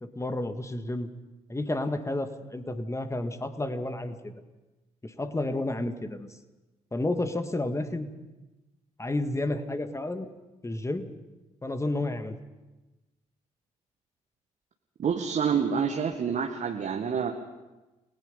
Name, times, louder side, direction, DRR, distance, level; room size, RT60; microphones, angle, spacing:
voice 1, 0.0-1.1 1.5-4.3 5.0-6.3 6.9-8.1 9.0-10.3 10.6-11.1 11.6-12.4, left 2 dB, 15° left, 8 dB, 2.0 m, -31 dB
voice 2, 15.0-17.3, right 6 dB, 45° right, 3 dB, 1.7 m, -27 dB
29.0 x 19.0 x 5.5 m, 1.1 s
figure-of-eight pair, 45°, 17 cm